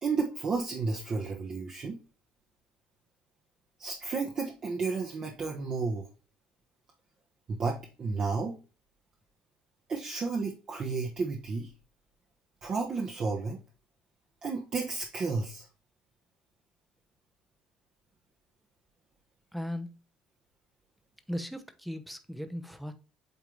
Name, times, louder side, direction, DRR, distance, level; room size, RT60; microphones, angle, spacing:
voice 1, 0.0-2.0 3.8-6.1 7.5-8.6 9.9-11.7 12.6-13.6 14.4-15.7, right 4 dB, 35° right, 1.1 m, -32 dB
voice 2, 19.5-20.0 21.3-22.9, equal, ahead, 0.8 m, -37 dB
8.2 x 3.7 x 3.3 m
cardioid pair, 130°, 2 cm